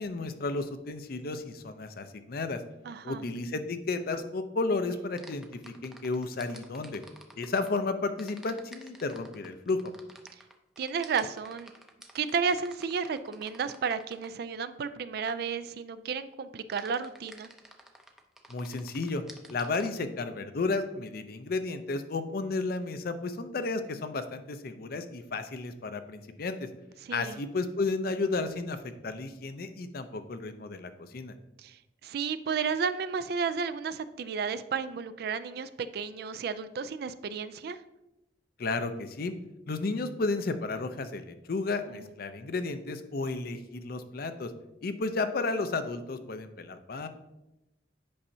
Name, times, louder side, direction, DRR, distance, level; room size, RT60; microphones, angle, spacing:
voice 1, 0.0-2.6 3.0-5.5 5.8-7.0 7.4-9.8 18.5-19.2 19.5-26.6 27.1-31.3 38.6-39.3 39.7-44.5 44.8-47.1, left 3 dB, 55° left, 9 dB, 0.5 m, -32 dB
voice 2, 2.8-3.2 10.8-11.7 12.1-17.5 27.0-27.4 31.6-37.8 41.9-42.1, right 6 dB, 60° right, 13 dB, 0.4 m, -32 dB
sound 1, 5.2-7.8 8.2-14.4 16.7-19.9, right 1 dB, ahead, 0.5 m, -51 dB
8.6 x 5.5 x 2.7 m, 0.94 s
head